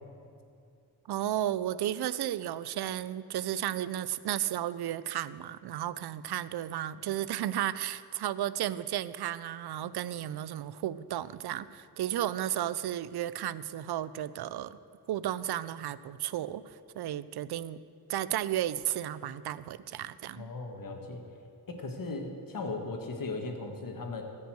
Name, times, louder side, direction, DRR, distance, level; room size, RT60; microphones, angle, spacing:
voice 1, 1.1-14.8 15.1-17.8 18.1-20.5, right 12 dB, 70° right, 16 dB, 0.5 m, -33 dB
voice 2, 20.3-21.2 21.7-24.2, left 3 dB, 55° left, 3 dB, 1.6 m, -37 dB
15.0 x 5.5 x 7.7 m, 2.4 s
cardioid pair, 85°, 40 cm